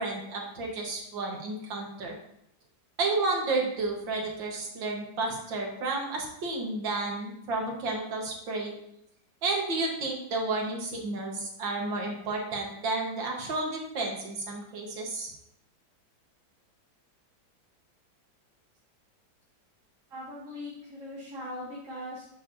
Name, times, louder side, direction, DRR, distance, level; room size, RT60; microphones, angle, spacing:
voice 1, 0.0-2.1 3.0-8.7 9.4-15.3, right 3 dB, 75° right, 0 dB, 2.2 m, -31 dB
voice 2, 20.1-22.2, left 1 dB, 45° right, -6 dB, 1.7 m, -40 dB
9.0 x 7.0 x 2.8 m, 0.77 s
omnidirectional pair, 2.1 m